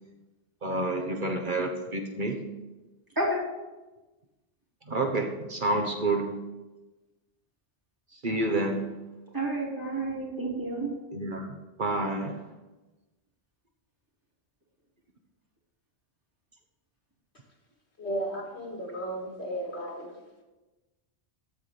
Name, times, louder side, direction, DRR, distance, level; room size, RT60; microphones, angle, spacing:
voice 1, 0.6-2.4 4.9-6.3 8.2-8.9 11.1-12.4, right 2 dB, 50° right, 2 dB, 1.3 m, -29 dB
voice 2, 9.3-10.9, right 1 dB, 20° right, -4 dB, 3.0 m, -30 dB
voice 3, 18.0-20.1, right 1 dB, 80° left, 0 dB, 2.5 m, -34 dB
14.0 x 4.8 x 7.1 m, 1.1 s
omnidirectional pair, 1.1 m